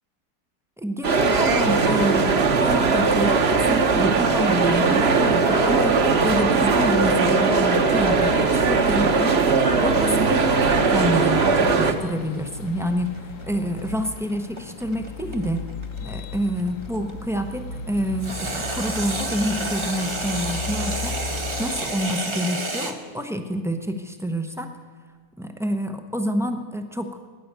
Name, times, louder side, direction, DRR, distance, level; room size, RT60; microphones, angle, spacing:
voice 1, 0.8-15.6 16.0-21.2 21.6-24.7 25.4-27.1, equal, 5° right, 6 dB, 0.3 m, -28 dB
sound 1, 1.0-11.9, right 4 dB, 45° right, 1.1 m, -19 dB
sound 2, 9.4-22.1, left 3 dB, 70° left, 1.4 m, -36 dB
sound 3, 11.9-17.1 18.2-22.9, right 2 dB, 20° right, 0.9 m, -30 dB
15.0 x 10.5 x 8.0 m, 1.5 s
omnidirectional pair, 1.8 m